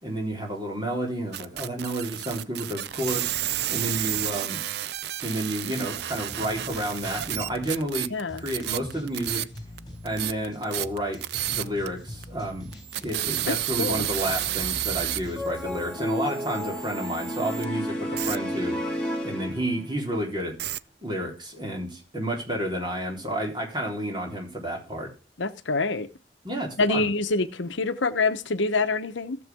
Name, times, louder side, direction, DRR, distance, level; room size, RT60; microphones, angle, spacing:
voice 1, 0.0-3.3 3.7-4.6 5.2-8.1 8.4-9.5 10.0-11.2 11.5-12.7 13.0-18.8 19.2-20.5 21.0-25.1 26.4-27.1, right 1 dB, 25° right, 3.6 m, -30 dB
sound 1, 1.3-9.8 10.1-11.9 12.2-12.3 12.7-17.6 18.2-18.4 20.6-20.8, right 13 dB, 60° right, 0.4 m, -31 dB
sound 2, 5.9-15.9, left 1 dB, 20° left, 4.0 m, -43 dB
voice 2, 8.1-8.4 13.5-14.1 25.4-26.1 26.8-29.4, left 3 dB, 80° left, 0.9 m, -26 dB
sound 3, 15.4-20.0, equal, 5° left, 2.8 m, -31 dB
15.5 x 7.1 x 3.5 m
head